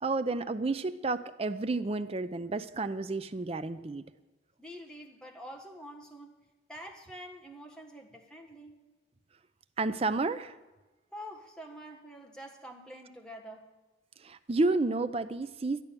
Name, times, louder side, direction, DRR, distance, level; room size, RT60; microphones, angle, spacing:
voice 1, 0.0-4.1 9.8-10.5 14.2-15.8, right 3 dB, 30° right, 12 dB, 0.5 m, -31 dB
voice 2, 4.6-8.8 11.1-13.7, equal, 5° left, 2 dB, 1.3 m, -47 dB
12.0 x 10.5 x 6.8 m, 1.2 s
head